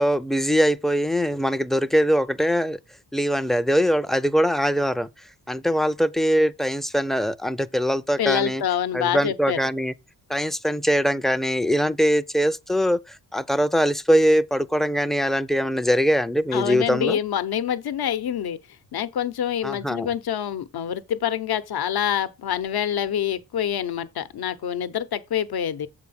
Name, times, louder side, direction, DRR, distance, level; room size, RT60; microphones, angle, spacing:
voice 1, 0.0-2.8 3.1-5.1 5.5-8.6 8.9-9.9 10.3-17.2 19.6-20.1, equal, ahead, 0.3 m, -22 dB
voice 2, 8.2-9.6 16.5-18.6 18.9-25.9, left 9 dB, 75° left, 0.8 m, -26 dB
7.7 x 4.7 x 5.7 m
wide cardioid pair, 125°, 38 cm